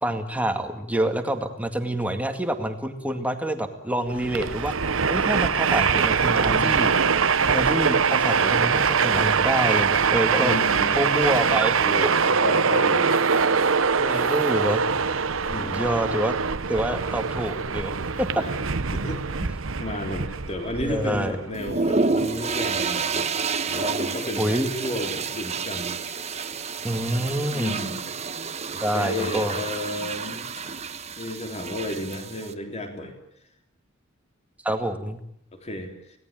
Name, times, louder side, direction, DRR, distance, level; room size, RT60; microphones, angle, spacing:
voice 1, 0.0-4.7 5.1-6.9 7.4-10.5 10.9-11.8 14.0-14.8 15.7-16.3 16.7-18.4 19.4-19.5 20.8-21.3 24.4-24.7 26.8-27.7 28.8-29.6 34.6-35.2, right 1 dB, 5° right, 6 dB, 2.2 m, -27 dB
Train, 4.1-21.7, right 5 dB, 80° right, 1.0 m, -23 dB
voice 2, 6.4-6.7 8.4-8.6 10.4-11.0 11.8-13.1 15.5-15.8 18.4-18.5 18.9-19.2 19.8-23.3 23.7-26.0 27.5-28.0 28.7-30.5 31.2-33.1 35.5-35.9, left 1 dB, 35° left, 4 dB, 3.7 m, -32 dB
sound 1, 21.5-32.5, right 4 dB, 35° right, 1.3 m, -29 dB
27.0 x 18.5 x 9.1 m, 0.75 s
head